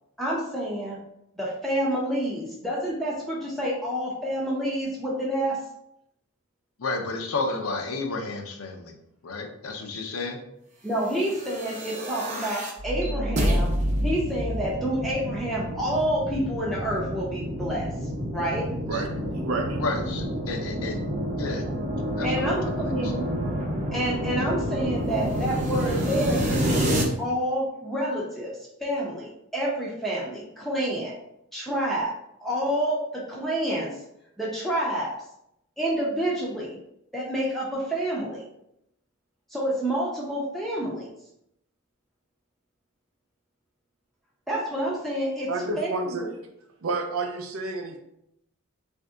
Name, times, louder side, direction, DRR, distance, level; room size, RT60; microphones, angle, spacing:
voice 1, 0.2-1.0 1.4-5.6 10.8-13.7 14.0-17.9 18.3-18.7 22.2-23.3 23.9-28.5 28.8-31.1 31.5-32.1 32.4-34.0 34.4-35.1 35.8-36.8 37.1-38.5 39.5-41.1 44.5-45.5 45.8-46.3, right 1 dB, ahead, -5 dB, 0.6 m, -28 dB
voice 2, 6.8-9.0 9.2-10.4 18.9-19.0 19.8-21.0 21.4-21.7 22.2-23.1, left 3 dB, 90° left, 3 dB, 0.6 m, -32 dB
sound 1, 11.3-27.0, equal, 35° right, 0.7 m, -28 dB
voice 3, 19.4-19.8 45.5-46.3 46.8-48.0, right 3 dB, 75° right, 3 dB, 0.6 m, -29 dB
3.2 x 2.7 x 3.6 m, 0.78 s
head